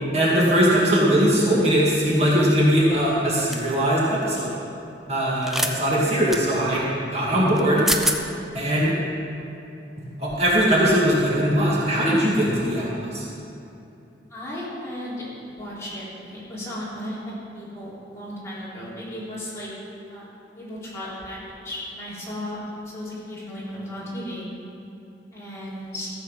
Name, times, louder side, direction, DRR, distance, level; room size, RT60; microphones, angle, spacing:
voice 1, 0.1-4.5 5.1-6.8 7.1-7.9 8.5-8.9 10.0-13.3, equal, 40° right, -6 dB, 2.1 m, -20 dB
sound 1, 3.5-3.7 5.4-5.7 6.3-6.4 7.6-7.7 7.9-8.2, equal, ahead, 0.6 m, -24 dB
voice 2, 14.3-19.7 20.1-20.3 20.5-22.6 22.9-24.5 25.3-26.1, left 1 dB, 15° left, -9 dB, 3.4 m, -35 dB
14.5 x 7.5 x 5.7 m, 2.8 s
head